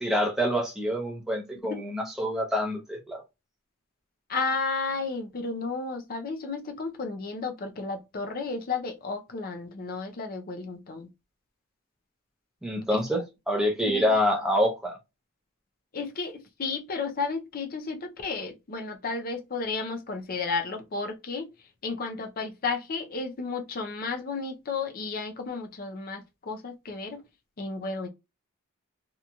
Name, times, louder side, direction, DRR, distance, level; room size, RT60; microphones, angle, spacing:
voice 1, 0.0-3.2 12.6-15.0, equal, ahead, 0.7 m, -26 dB
voice 2, 4.3-11.1 12.9-13.0 13.9-14.2 15.9-21.5 21.8-27.2 27.6-28.1, left 4 dB, 45° left, 0.5 m, -33 dB
2.9 x 2.6 x 2.2 m
head